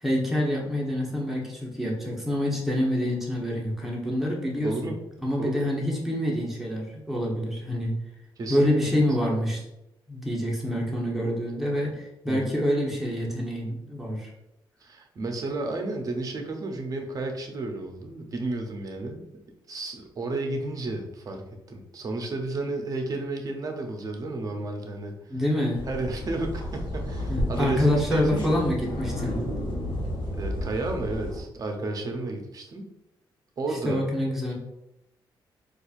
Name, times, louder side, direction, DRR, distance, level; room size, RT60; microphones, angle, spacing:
voice 1, 0.0-4.9 5.2-7.9 8.5-9.6 10.1-14.3 25.3-25.9 27.3-29.4 33.7-34.5, left 1 dB, 5° right, -3 dB, 0.9 m, -26 dB
voice 2, 4.6-5.0 5.4-5.6 8.4-8.7 11.8-12.0 12.3-12.5 14.8-19.2 19.7-25.1 25.9-28.6 30.3-32.8 33.6-34.0, right 2 dB, 45° right, 4 dB, 0.6 m, -32 dB
sound 1, 25.7-31.4, left 1 dB, 65° left, 1.0 m, -32 dB
4.2 x 2.4 x 2.4 m, 0.88 s
cardioid pair, 100°, 9 cm